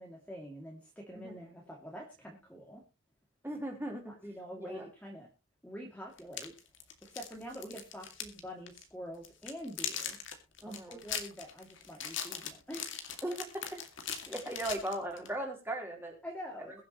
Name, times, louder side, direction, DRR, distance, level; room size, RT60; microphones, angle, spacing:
voice 1, 0.0-2.8 4.1-5.3 5.6-6.5 7.0-10.2 10.6-12.9 14.1-14.3 16.2-16.8, equal, 5° left, -1 dB, 2.4 m, -46 dB
voice 2, 3.4-4.1 4.6-4.9 10.6-11.0 13.2-13.8 14.3-16.1, right 1 dB, 10° right, 1 dB, 3.7 m, -38 dB
sound 1, 6.2-8.4 8.7-8.8 9.2-15.3, left 8 dB, 55° left, 2.2 m, -40 dB
22.5 x 7.5 x 3.0 m, 0.29 s
head